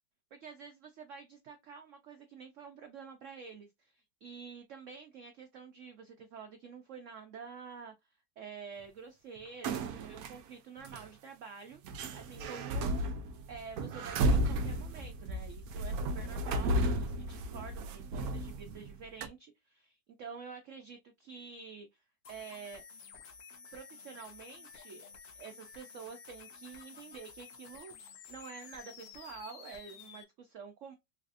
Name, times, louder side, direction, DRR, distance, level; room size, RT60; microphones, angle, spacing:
voice 1, 0.3-7.9 8.4-11.8 12.1-13.0 13.5-22.0 22.3-22.8 23.7-25.1 25.3-30.9, right 5 dB, 85° right, 0.6 m, -48 dB
sound 1, 9.6-10.4 10.8-11.0 11.8-18.9 19.2-19.3, right 1 dB, 65° right, 0.9 m, -33 dB
sound 2, 22.2-30.2, left 5 dB, 65° left, 1.0 m, -52 dB
4.0 x 2.5 x 2.4 m
omnidirectional pair, 2.0 m